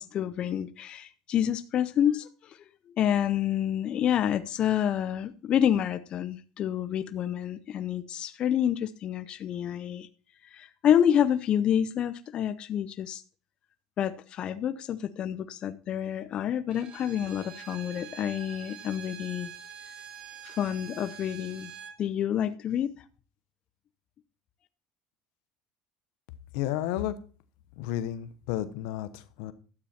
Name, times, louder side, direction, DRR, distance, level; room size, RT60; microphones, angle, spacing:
voice 1, 0.0-2.6 3.0-10.1 10.4-13.2 14.0-19.5 20.4-21.7 22.0-23.0, left 9 dB, 45° left, 12 dB, 0.7 m, -28 dB
Bowed string instrument, 16.7-22.0, right 9 dB, 45° right, 1.5 m, -45 dB
voice 2, 26.5-27.1 27.8-29.5, left 12 dB, 80° left, 13 dB, 1.0 m, -32 dB
12.5 x 8.6 x 4.3 m, 0.39 s
supercardioid pair, 105°, 2 cm